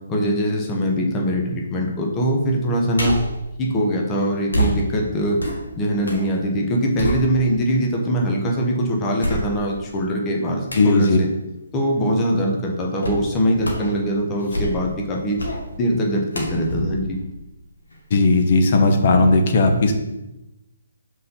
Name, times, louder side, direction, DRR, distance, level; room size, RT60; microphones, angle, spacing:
voice 1, 0.1-3.2 3.6-5.4 5.8-11.3 11.7-15.4 15.8-17.2, equal, 20° left, 0 dB, 1.1 m, -22 dB
sound 1, 3.0-3.4 4.5-6.3 6.6-7.7 8.3-8.4 9.2-9.9 10.7-11.0 13.0-13.3 13.6-14.0 14.4-15.0 15.4-15.6 16.3-18.0 18.4-18.5, equal, 70° left, 1.7 m, -27 dB
voice 2, 10.7-11.2 18.1-19.9, left 2 dB, 45° left, 5 dB, 1.0 m, -16 dB
5.5 x 4.0 x 5.5 m, 0.96 s
figure-of-eight pair, 135°, 0 cm